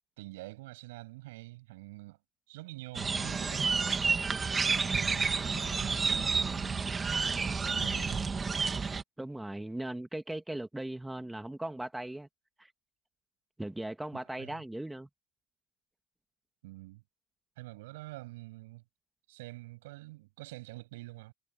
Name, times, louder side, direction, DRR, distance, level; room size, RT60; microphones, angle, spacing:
voice 1, 0.2-2.2 2.5-3.8 4.6-6.9 7.4-8.3 14.1-14.6 16.6-17.0 17.6-18.8 19.3-21.3, right 20 dB, 85° right, 7.9 m, -46 dB
sound 1, 2.9-9.0, right 5 dB, 25° right, 2.2 m, -30 dB
voice 2, 9.2-12.3 12.6-12.7 13.6-15.1, right 1 dB, 5° right, 2.1 m, -38 dB
supercardioid pair, 95°, 0 cm